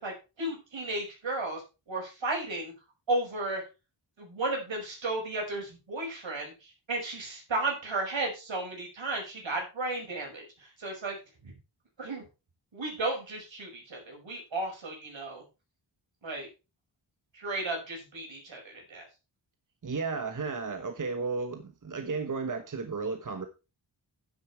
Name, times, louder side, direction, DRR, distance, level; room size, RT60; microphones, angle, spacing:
voice 1, 0.0-1.6 1.9-2.7 3.1-3.6 4.2-11.2 11.4-11.5 12.0-12.2 12.7-15.4 16.2-16.5 17.3-19.0, right 2 dB, 75° right, 5.8 m, -34 dB
voice 2, 19.8-23.5, right 4 dB, 40° right, 1.1 m, -33 dB
9.5 x 8.5 x 4.4 m
wide cardioid pair, 120°, 46 cm